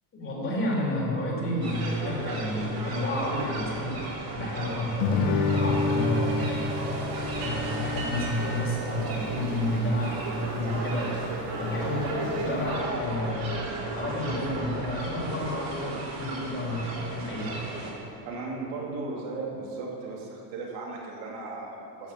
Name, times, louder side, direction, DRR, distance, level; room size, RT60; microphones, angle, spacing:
voice 1, 0.1-4.0 4.3-6.7 7.4-11.1 11.6-13.5 13.9-17.5, left 1 dB, 25° left, -3 dB, 3.6 m, -30 dB
sound 1, 1.6-17.9, right 2 dB, 45° right, 3.2 m, -34 dB
Guitar, 5.0-10.1, left 3 dB, 75° left, 1.5 m, -29 dB
voice 2, 18.2-22.1, right 3 dB, 65° right, -3 dB, 3.3 m, -36 dB
13.0 x 7.2 x 7.7 m, 2.7 s
supercardioid pair, 130°, 50 cm